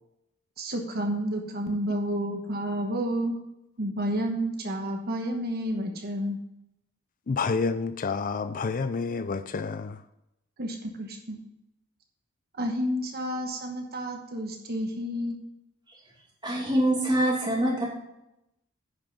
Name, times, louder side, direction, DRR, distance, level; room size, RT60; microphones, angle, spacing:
voice 1, 0.6-3.4 3.8-6.4 10.6-11.4 12.6-15.4, equal, 45° right, 1.2 m, -30 dB
voice 2, 7.3-10.0, left 4 dB, 40° left, 0.4 m, -29 dB
voice 3, 16.4-17.9, right 1 dB, 20° right, 2.5 m, -24 dB
10.0 x 5.6 x 5.4 m
head